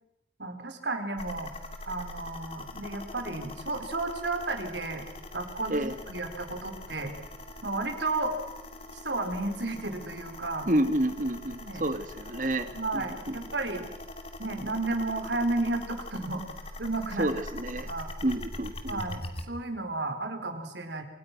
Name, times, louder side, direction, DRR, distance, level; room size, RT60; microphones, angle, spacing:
voice 1, 0.4-1.5 1.8-5.0 5.3-7.1 7.6-8.4 8.9-10.7 11.6-11.8 12.7-13.9 14.4-16.4 16.8-17.3 17.9-18.1 18.9-21.0, right 2 dB, 85° right, 5 dB, 4.7 m, -32 dB
sound 1, 1.2-19.5, left 2 dB, 35° left, 2.8 m, -43 dB
voice 2, 10.7-13.5 17.2-17.9 18.2-19.0, right 1 dB, 45° right, 10 dB, 2.2 m, -29 dB
29.5 x 27.0 x 6.2 m, 0.92 s
head